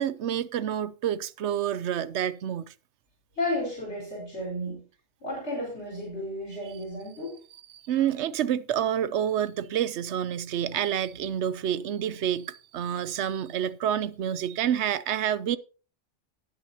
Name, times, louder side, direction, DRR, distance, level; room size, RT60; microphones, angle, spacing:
voice 1, 0.0-2.7 7.7-15.6, right 10 dB, 85° right, 0.9 m, -28 dB
voice 2, 3.4-4.8 5.2-7.3, left 1 dB, 80° left, 4.9 m, -33 dB
19.0 x 6.4 x 2.9 m
omnidirectional pair, 1.1 m